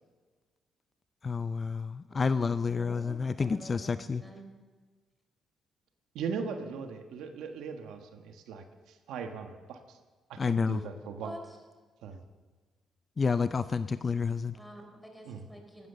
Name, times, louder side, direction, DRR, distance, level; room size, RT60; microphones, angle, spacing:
voice 1, 1.2-4.2 10.4-10.8 13.2-14.6, left 5 dB, 35° left, 13 dB, 0.4 m, -29 dB
voice 2, 2.1-3.9 4.2-4.4 11.2-11.6 14.5-15.9, equal, ahead, 3 dB, 3.8 m, -48 dB
voice 3, 6.1-10.0 10.3-11.3 12.0-12.2 15.2-15.4, right 6 dB, 85° right, 6 dB, 1.4 m, -39 dB
15.5 x 12.5 x 6.7 m, 1.4 s
cardioid pair, 90°, 0 cm